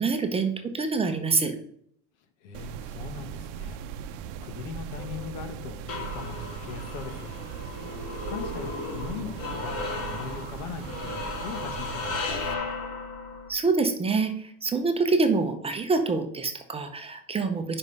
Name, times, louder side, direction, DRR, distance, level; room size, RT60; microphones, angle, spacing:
voice 1, 0.0-1.5 13.5-17.8, right 4 dB, 15° right, 0.7 m, -26 dB
voice 2, 2.4-3.8 4.4-7.3 8.3-12.6, left 6 dB, 80° left, 1.4 m, -40 dB
sound 1, 2.5-12.5, right 8 dB, 80° right, 0.7 m, -39 dB
sound 2, 5.0-13.5, left 3 dB, 40° left, 1.6 m, -36 dB
5.4 x 5.2 x 5.4 m
cardioid pair, 140°, 37 cm